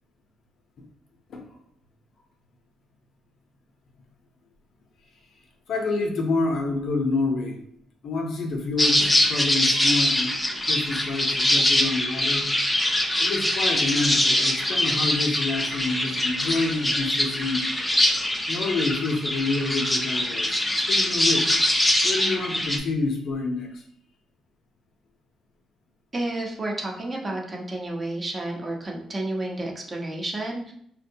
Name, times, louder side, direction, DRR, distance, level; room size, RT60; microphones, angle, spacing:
voice 1, 5.7-7.6 8.0-12.5 12.9-17.7 18.5-20.6 20.9-21.6 22.0-23.8, left 3 dB, 65° left, 2 dB, 0.6 m, -28 dB
sound 1, 8.8-22.8, left 1 dB, 10° left, 0.5 m, -23 dB
voice 2, 26.1-30.7, right 2 dB, 30° right, 0 dB, 0.8 m, -31 dB
3.5 x 2.2 x 2.7 m, 0.67 s
cardioid pair, 90°, 0 cm